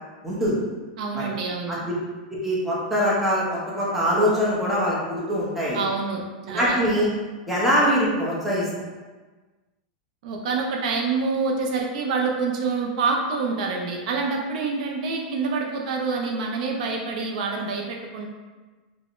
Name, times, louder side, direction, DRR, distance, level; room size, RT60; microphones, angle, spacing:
voice 1, 0.2-0.6 1.1-1.3 1.8-1.9 2.3-5.8 6.5-7.1 7.5-8.6, equal, 5° right, -7 dB, 0.7 m, -23 dB
voice 2, 1.0-1.8 5.7-6.8 10.2-18.3, right 4 dB, 65° right, 0 dB, 0.4 m, -26 dB
3.4 x 2.0 x 2.4 m, 1.3 s
supercardioid pair, 145°, 4 cm